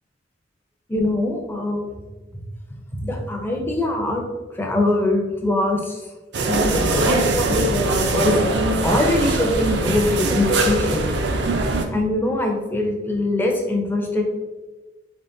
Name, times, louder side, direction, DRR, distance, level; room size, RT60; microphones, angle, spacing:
voice 1, 0.9-1.8 3.0-4.3 4.5-6.1 6.5-11.1 11.9-14.2, left 1 dB, 10° left, 1 dB, 0.5 m, -23 dB
sound 1, 6.3-11.8, right 2 dB, 70° right, 0.5 m, -21 dB
4.1 x 3.5 x 2.6 m, 1.2 s
head